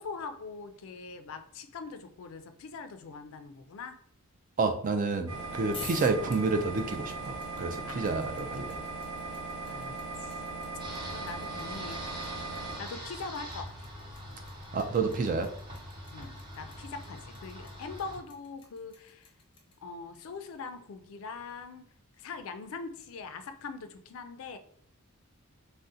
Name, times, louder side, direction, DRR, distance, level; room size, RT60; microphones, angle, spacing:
voice 1, 0.0-4.0 7.9-8.4 9.7-10.4 11.1-12.1 12.6-13.9 16.1-19.3 19.8-24.6, left 4 dB, 65° left, 8 dB, 0.4 m, -42 dB
voice 2, 4.6-8.8 14.7-15.5, right 4 dB, 40° right, 7 dB, 0.3 m, -29 dB
sound 1, 5.3-12.8, right 3 dB, 80° right, 1.0 m, -39 dB
sound 2, 5.6-19.7, left 4 dB, 25° left, 0.6 m, -49 dB
sound 3, 10.8-18.2, equal, 20° right, 0.8 m, -44 dB
3.6 x 2.1 x 2.6 m, 0.65 s
head